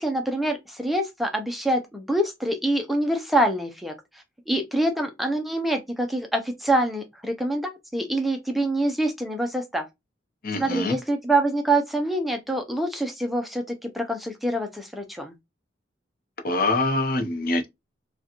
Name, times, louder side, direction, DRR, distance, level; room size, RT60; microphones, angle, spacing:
voice 1, 0.0-3.9 4.5-9.8 10.6-15.3, right 1 dB, ahead, 0.4 m, -25 dB
voice 2, 10.4-10.9 16.4-17.7, left 2 dB, 50° left, 0.7 m, -24 dB
4.7 x 2.2 x 2.9 m
head